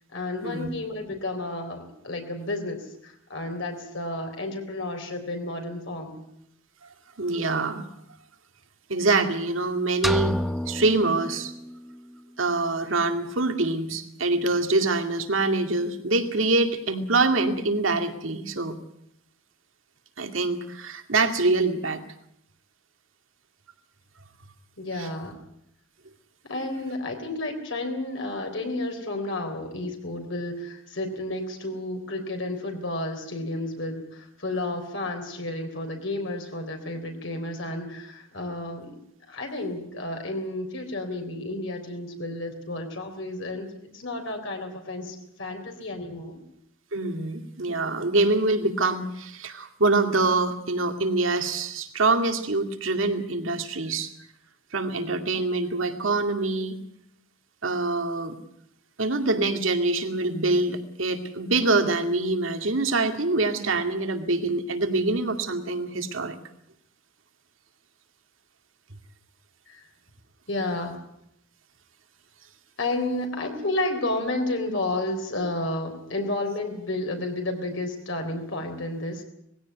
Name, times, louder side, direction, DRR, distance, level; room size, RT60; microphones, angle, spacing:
voice 1, 0.1-6.2 24.8-25.4 26.5-39.0 39.3-46.4 69.7-69.9 70.5-71.0 72.8-79.2, left 2 dB, 65° left, 4 dB, 3.6 m, -31 dB
voice 2, 7.2-7.8 8.9-10.3 10.7-11.5 12.4-18.8 20.2-22.0 46.9-54.1 54.7-56.8 57.6-58.4 59.0-66.4, right 3 dB, 75° right, 6 dB, 2.3 m, -25 dB
sound 1, 10.0-12.0, equal, ahead, 0.7 m, -29 dB
20.0 x 16.0 x 9.4 m, 0.77 s
head